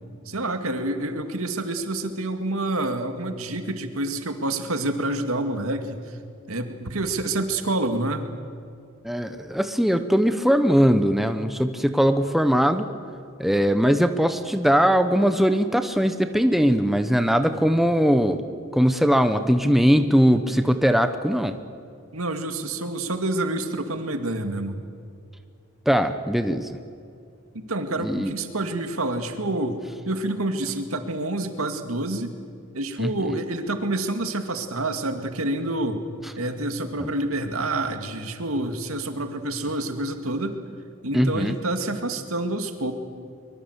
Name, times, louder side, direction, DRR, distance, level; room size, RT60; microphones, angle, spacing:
voice 1, 0.3-6.2 6.5-8.3 22.1-24.8 27.5-29.8 30.0-32.3 32.7-36.0 36.4-40.6 41.0-42.9, right 2 dB, 85° right, 7 dB, 2.3 m, -28 dB
voice 2, 9.0-12.9 13.4-18.4 18.7-21.5 25.9-26.7 28.0-28.3 33.0-33.1 41.1-41.6, equal, ahead, 8 dB, 0.9 m, -20 dB
24.0 x 23.0 x 8.2 m, 2.4 s
head